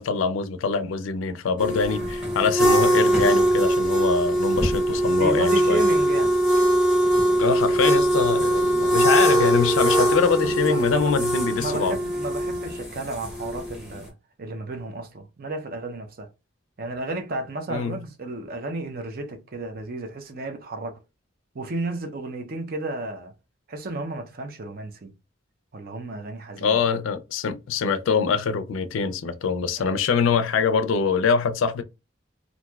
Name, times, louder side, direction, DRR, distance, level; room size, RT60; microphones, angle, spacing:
voice 1, 0.0-5.8 7.4-11.9 17.7-18.0 26.6-31.8, left 5 dB, 85° left, 0.4 m, -24 dB
sound 1, 1.6-14.0, right 1 dB, 5° right, 0.9 m, -21 dB
voice 2, 5.1-6.3 10.4-11.1 11.6-14.1 14.4-16.3 16.8-21.0 21.5-23.3 23.7-25.1 25.7-26.8, right 2 dB, 50° right, 0.5 m, -33 dB
3.1 x 2.5 x 2.2 m
head